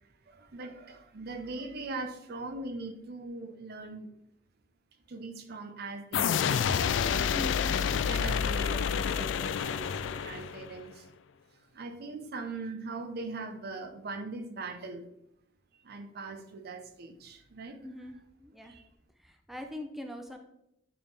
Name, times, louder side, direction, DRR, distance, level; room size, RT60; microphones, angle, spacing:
voice 1, 0.3-4.1 5.1-6.9 8.0-11.1 11.7-15.0 15.8-17.8 18.6-18.9, right 3 dB, 55° right, 7 dB, 0.6 m, -41 dB
sound 1, 6.1-10.8, left 7 dB, 75° left, 0.3 m, -29 dB
voice 2, 7.3-7.8 17.8-18.8 19.2-20.4, left 1 dB, ahead, 4 dB, 0.5 m, -42 dB
8.6 x 3.6 x 3.3 m, 0.80 s
head